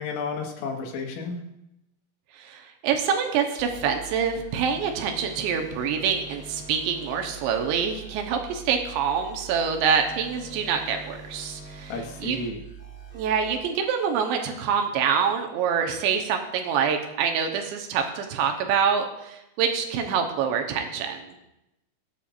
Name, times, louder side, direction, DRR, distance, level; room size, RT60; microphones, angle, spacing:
voice 1, 0.0-1.4 11.9-12.6, left 4 dB, 90° left, 1 dB, 4.3 m, -32 dB
voice 2, 2.4-12.4 13.1-21.2, right 7 dB, 75° right, 4 dB, 2.9 m, -26 dB
sound 1, 3.6-13.6, right 4 dB, 5° right, 3.0 m, -43 dB
24.0 x 8.8 x 2.6 m, 0.88 s
omnidirectional pair, 5.8 m